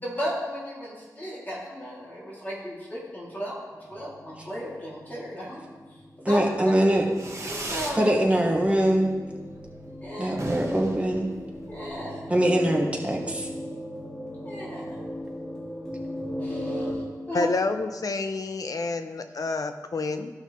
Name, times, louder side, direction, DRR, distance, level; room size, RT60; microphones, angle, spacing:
voice 1, 0.0-5.6 6.2-6.4 7.4-8.1 10.0-10.3 11.7-12.3 14.4-15.0 16.4-17.5, equal, 25° left, -6 dB, 2.5 m, -35 dB
sound 1, 3.9-17.0, equal, 5° left, 2.3 m, -38 dB
voice 2, 6.2-7.0 8.0-9.1 10.2-11.3 12.3-13.5, right 1 dB, 20° right, 0 dB, 1.5 m, -22 dB
Fireworks, 7.1-8.1 8.4-9.0 9.2-9.3 9.6-9.7 9.9-10.0 10.3-11.9, right 2 dB, 45° right, 1.3 m, -36 dB
voice 3, 17.3-20.3, left 3 dB, 60° left, 8 dB, 0.7 m, -28 dB
14.5 x 5.7 x 3.1 m, 1.3 s
wide cardioid pair, 80°, 7 cm